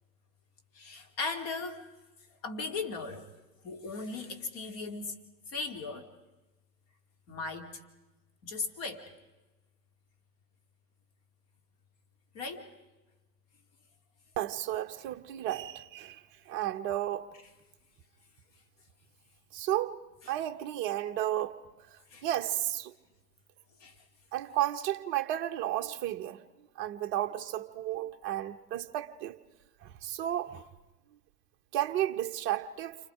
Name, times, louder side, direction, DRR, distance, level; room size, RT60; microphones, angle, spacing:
voice 1, 0.7-1.8 2.4-3.3 3.6-5.1 5.5-6.1 7.3-7.8 8.4-9.0 12.3-12.7 22.1-22.3 23.8-24.0, left 4 dB, 30° left, 2.9 m, -37 dB
voice 2, 14.4-17.3 19.5-20.0 20.3-21.6 22.2-22.9 24.3-26.4 26.8-29.4 29.8-30.6 31.7-33.0, right 13 dB, 25° right, 1.0 m, -33 dB
30.0 x 26.0 x 5.1 m
figure-of-eight pair, 110°, 49 cm